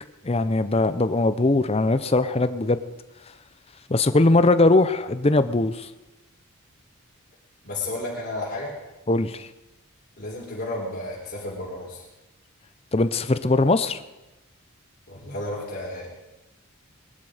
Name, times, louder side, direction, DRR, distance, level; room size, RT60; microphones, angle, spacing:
voice 1, 0.2-2.8 3.9-5.9 9.1-9.5 12.9-14.0, left 2 dB, 25° left, 12 dB, 0.6 m, -20 dB
voice 2, 7.6-8.7 10.2-12.0 15.1-16.2, left 2 dB, 45° left, -6 dB, 4.1 m, -32 dB
21.0 x 11.5 x 5.0 m, 1.0 s
head